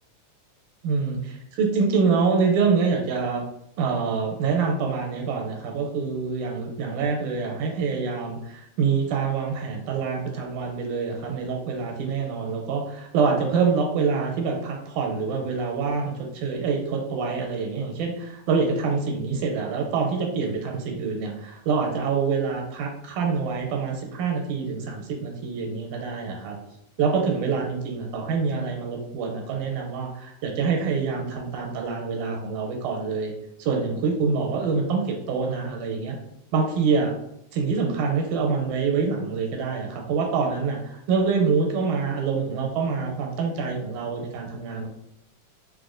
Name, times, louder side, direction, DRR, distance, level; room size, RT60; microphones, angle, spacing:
voice 1, 0.8-3.4 3.8-26.6 27.0-33.3 33.6-36.2 36.5-37.1 37.5-44.9, right 5 dB, 85° right, 1 dB, 1.9 m, -26 dB
4.7 x 2.1 x 2.4 m, 0.80 s
omnidirectional pair, 3.3 m